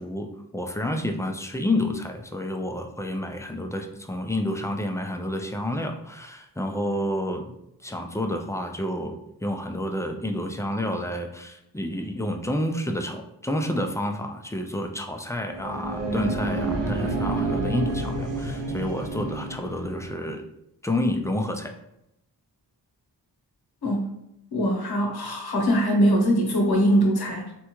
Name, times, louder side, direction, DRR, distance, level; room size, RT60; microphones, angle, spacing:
voice 1, 0.0-7.5 7.8-20.4 20.8-21.7, left 1 dB, 10° left, 3 dB, 0.3 m, -29 dB
sound 1, 15.4-20.1, right 2 dB, 85° right, 0.6 m, -29 dB
voice 2, 23.8-24.1 24.5-27.5, equal, 65° left, 1 dB, 0.9 m, -22 dB
3.5 x 2.2 x 2.9 m, 0.82 s
cardioid pair, 45°, 41 cm